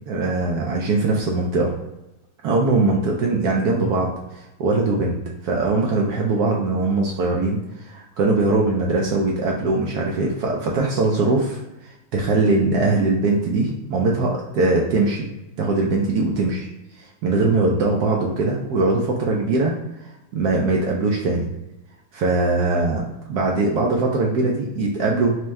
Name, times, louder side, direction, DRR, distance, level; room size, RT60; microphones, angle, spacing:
voice 1, 0.1-1.7 2.4-11.6 12.1-15.3 15.6-16.7 17.0-21.5 22.1-23.0 23.3-25.3, right 3 dB, 80° right, -1 dB, 0.8 m, -21 dB
4.4 x 2.1 x 3.4 m, 0.96 s
omnidirectional pair, 2.2 m